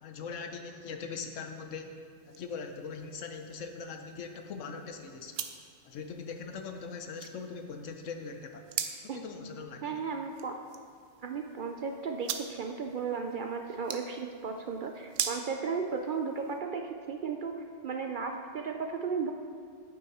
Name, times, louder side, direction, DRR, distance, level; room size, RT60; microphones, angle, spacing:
voice 1, 0.0-5.4 5.8-8.7 9.0-10.0, left 5 dB, 85° left, 5 dB, 1.2 m, -41 dB
sound 1, 1.4-16.6, right 9 dB, 85° right, 1.0 m, -43 dB
voice 2, 9.8-10.6 11.2-19.3, right 5 dB, 60° right, 4 dB, 0.6 m, -35 dB
8.8 x 8.6 x 4.2 m, 2.2 s
omnidirectional pair, 1.3 m